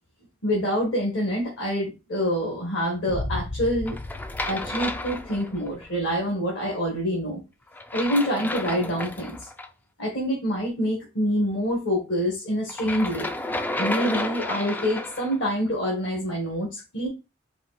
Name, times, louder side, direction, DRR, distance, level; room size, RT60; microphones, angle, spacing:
voice 1, 0.4-4.0 4.4-7.4 7.9-9.5 10.0-13.3 13.8-17.1, equal, 65° left, -2 dB, 1.7 m, -26 dB
sound 1, 3.1-6.0, left 2 dB, 50° left, 0.7 m, -35 dB
sound 2, 3.9-5.8 7.7-9.7 12.7-15.4, left 2 dB, 10° left, 0.3 m, -31 dB
4.8 x 2.6 x 4.2 m, 0.28 s
head